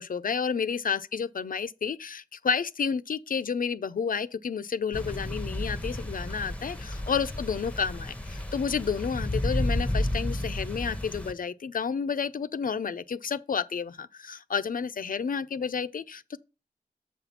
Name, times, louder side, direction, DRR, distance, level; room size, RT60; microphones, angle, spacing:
voice 1, 0.0-16.4, left 6 dB, 70° left, 0.5 m, -31 dB
sound 1, 4.9-11.3, left 1 dB, 10° left, 0.8 m, -32 dB
7.4 x 4.2 x 5.7 m
wide cardioid pair, 75°, 15 cm